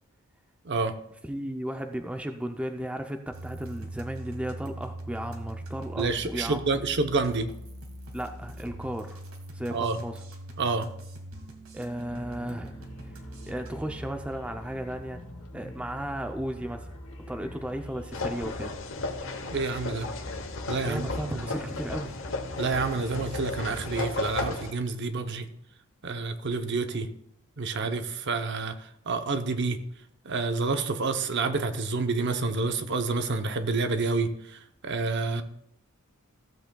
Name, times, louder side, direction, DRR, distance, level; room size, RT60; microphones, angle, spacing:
voice 1, 0.6-0.9 6.0-7.5 9.7-10.0 10.6-10.9 19.5-20.1 20.7-21.5 22.6-25.5 26.0-27.1 27.6-29.8 30.2-35.4, right 3 dB, 55° right, 8 dB, 0.7 m, -28 dB
voice 2, 1.3-6.6 8.1-9.2 9.5-10.2 11.7-13.2 13.5-15.2 15.5-16.9 17.3-18.7 20.8-22.2, right 1 dB, 5° right, 5 dB, 0.4 m, -35 dB
sound 1, 3.3-14.0, right 1 dB, 70° right, 1.6 m, -42 dB
sound 2, 12.1-24.6, equal, 80° left, 2.2 m, -44 dB
sound 3, 18.1-24.7, left 3 dB, 60° left, 0.9 m, -34 dB
15.5 x 8.0 x 2.3 m, 0.79 s
head